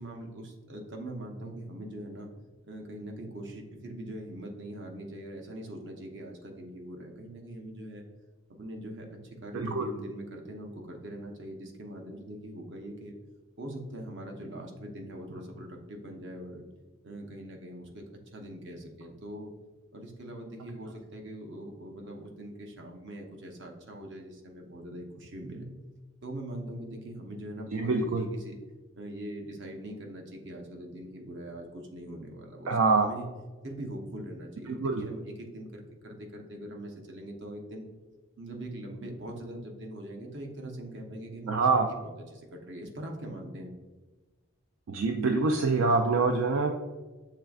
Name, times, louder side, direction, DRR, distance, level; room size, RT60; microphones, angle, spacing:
voice 1, 0.0-2.3 2.6-8.0 8.5-13.2 13.6-16.6 17.0-18.0 18.3-19.5 19.9-25.7 26.2-28.6 28.9-33.3 33.6-37.9 38.4-42.0 42.3-43.7, right 1 dB, 55° right, 2 dB, 0.7 m, -42 dB
voice 2, 9.5-9.9 27.7-28.2 32.7-33.1 34.7-35.1 41.5-41.9 44.9-46.8, right 3 dB, 70° right, 3 dB, 0.4 m, -25 dB
6.6 x 3.3 x 2.3 m, 1.3 s
head